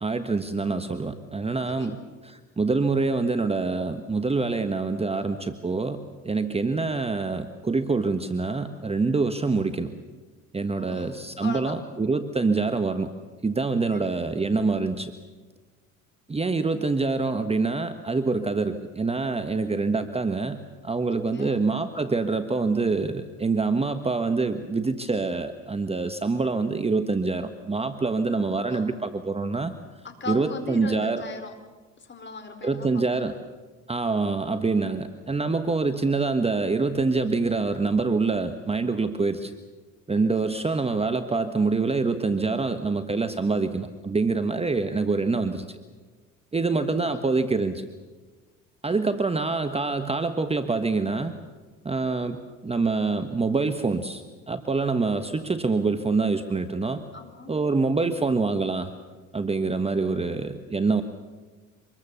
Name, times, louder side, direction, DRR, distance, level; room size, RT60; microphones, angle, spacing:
voice 1, 0.0-2.0 2.2-6.0 6.2-9.9 10.5-13.1 13.4-15.1 16.3-20.6 20.8-29.7 30.3-31.2 32.6-33.4 33.9-39.5 40.1-45.8 46.5-47.8 48.8-51.3 51.8-57.0 57.5-58.9 59.3-61.0, right 3 dB, 15° right, 9 dB, 1.2 m, -25 dB
voice 2, 1.7-2.0 10.8-11.1 11.4-11.9 13.9-14.1 21.1-21.5 28.3-28.8 30.0-31.5 32.0-33.2 40.2-40.5 47.0-47.2 57.1-57.5, left 4 dB, 30° left, 7 dB, 4.3 m, -39 dB
26.0 x 21.5 x 7.0 m, 1.3 s
hypercardioid pair, 80°, 38 cm